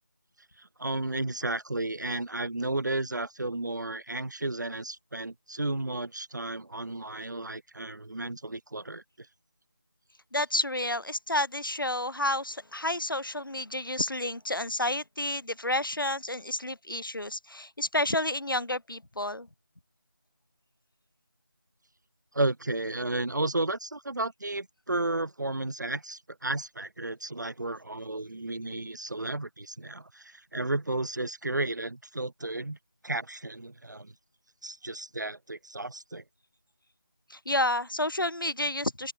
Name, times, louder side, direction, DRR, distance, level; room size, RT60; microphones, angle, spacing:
voice 1, 0.6-9.3 22.3-32.8 33.0-34.1 34.6-36.2, right 2 dB, 60° right, 1.7 m, -33 dB
voice 2, 10.3-19.5 37.3-39.1, left 1 dB, 90° left, 4.3 m, -30 dB
open air
figure-of-eight pair, 175°, 11 cm